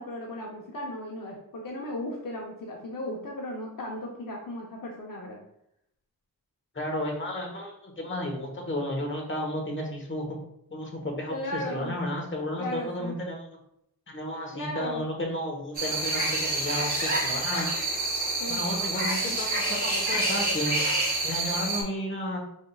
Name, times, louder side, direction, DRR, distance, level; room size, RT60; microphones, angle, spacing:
voice 1, 0.0-5.4 11.3-12.0 12.6-13.1 14.5-15.0 18.4-18.6, left 1 dB, 60° left, -1 dB, 0.8 m, -36 dB
voice 2, 6.7-10.3 10.7-13.5 14.1-17.8 18.5-20.8 21.2-22.4, left 1 dB, 30° left, 1 dB, 1.1 m, -32 dB
sound 1, 15.7-21.8, right 2 dB, 25° right, 1.5 m, -28 dB
5.1 x 3.6 x 2.3 m, 0.77 s
wide cardioid pair, 75°, 38 cm